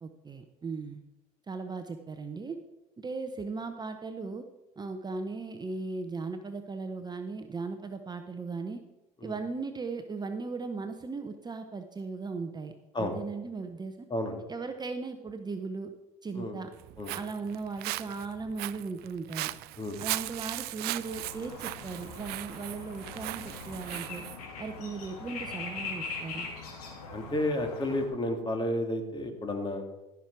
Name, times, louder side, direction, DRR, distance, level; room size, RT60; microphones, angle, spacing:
voice 1, 0.0-1.0 1.5-2.6 3.0-4.4 4.8-8.8 9.2-14.1 14.5-15.9 16.2-16.7 17.1-19.5 20.0-24.2 24.6-26.5, right 4 dB, 20° right, 6 dB, 0.8 m, -37 dB
Walk footsteps, 16.7-24.4, right 19 dB, 60° right, 0.4 m, -38 dB
sound 1, 21.0-28.1, left 4 dB, 85° left, 2.5 m, -41 dB
voice 2, 27.1-29.8, left 1 dB, 25° left, 5 dB, 2.1 m, -31 dB
14.0 x 6.1 x 4.6 m, 0.99 s
hypercardioid pair, 80°, 19 cm